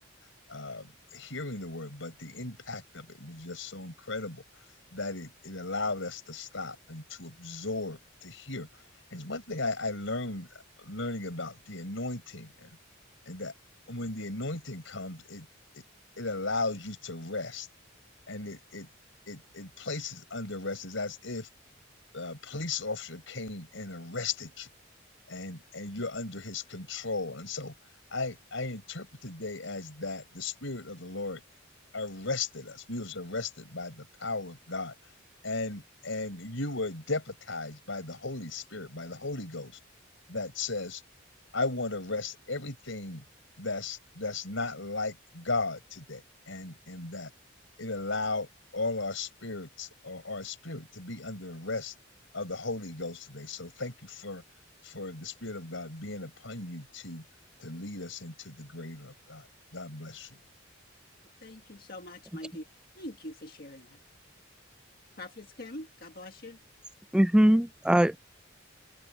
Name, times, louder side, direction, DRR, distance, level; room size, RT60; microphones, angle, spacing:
voice 1, 0.5-4.4 4.9-8.7 9.1-10.5 10.8-12.7 13.3-13.5 13.9-15.5 15.7-15.8 16.2-17.7 18.3-18.9 19.3-21.5 22.1-24.7 25.3-27.7 28.1-31.4 31.9-34.9 35.4-39.8 40.3-41.0 41.5-43.2 43.6-47.3 47.8-48.5 48.7-51.9 52.3-54.4 54.8-57.2 57.6-59.4 59.7-60.4, left 3 dB, 75° left, 4.7 m, -36 dB
voice 2, 61.4-62.7 63.0-64.0 65.1-66.6, left 1 dB, 50° left, 1.7 m, -44 dB
voice 3, 67.1-68.2, equal, 5° right, 0.3 m, -21 dB
open air
head